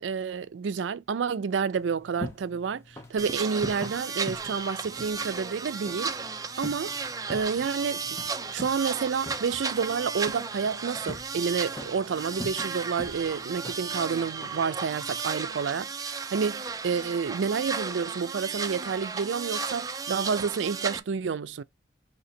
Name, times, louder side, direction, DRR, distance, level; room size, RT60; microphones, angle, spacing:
voice 1, 0.0-6.1 6.6-7.0 7.3-8.0 8.5-21.6, right 6 dB, 85° right, 0.4 m, -29 dB
sound 1, 1.8-15.2, left 1 dB, 15° left, 0.9 m, -44 dB
sound 2, 3.2-21.0, right 5 dB, 20° right, 0.4 m, -34 dB
3.9 x 2.9 x 4.2 m
head